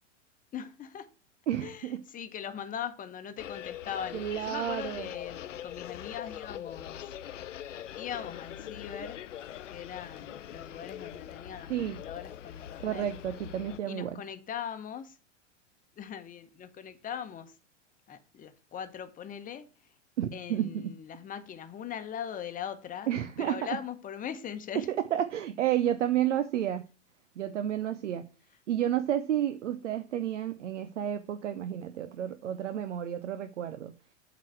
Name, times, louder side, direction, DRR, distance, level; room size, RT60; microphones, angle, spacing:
voice 1, 0.5-1.1 1.6-7.2 8.0-9.2 9.7-13.1 13.8-15.2 16.0-17.6 18.1-19.9 20.3-24.9, left 8 dB, 20° left, 1.0 m, -40 dB
voice 2, 1.5-2.0 4.1-5.1 11.7-12.0 12.8-14.1 20.2-20.9 23.1-23.6 24.9-26.9 27.4-28.3 28.7-33.9, right 11 dB, 75° right, 0.7 m, -31 dB
sound 1, 3.4-13.8, left 11 dB, 90° left, 0.5 m, -42 dB
7.3 x 4.1 x 6.1 m
hypercardioid pair, 105°, 36 cm